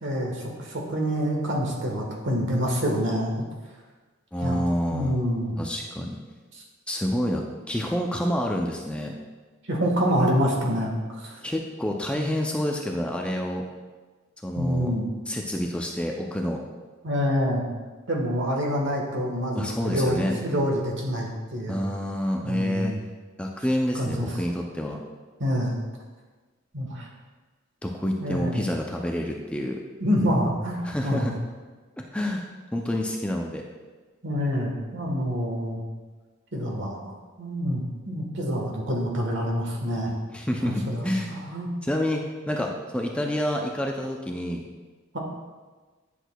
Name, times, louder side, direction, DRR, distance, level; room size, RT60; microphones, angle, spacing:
voice 1, 0.0-3.3 4.4-4.6 4.9-5.6 6.5-6.6 9.7-11.4 14.6-15.0 17.0-17.6 18.1-21.8 22.4-23.0 23.9-24.4 25.4-25.8 26.7-27.1 28.2-28.6 30.0-31.4 34.2-35.8 36.5-40.1 40.6-41.7 45.1-45.2, equal, 60° right, -1 dB, 1.3 m, -27 dB
voice 2, 4.3-5.2 5.6-6.2 6.9-9.1 11.4-13.6 14.4-14.9 15.3-16.6 19.6-20.4 21.7-22.9 23.4-25.0 27.8-29.8 30.8-31.3 32.0-32.4 32.7-33.6 40.3-41.3 41.8-44.6, equal, 5° left, 1 dB, 0.4 m, -28 dB
10.0 x 6.2 x 2.3 m, 1.3 s
head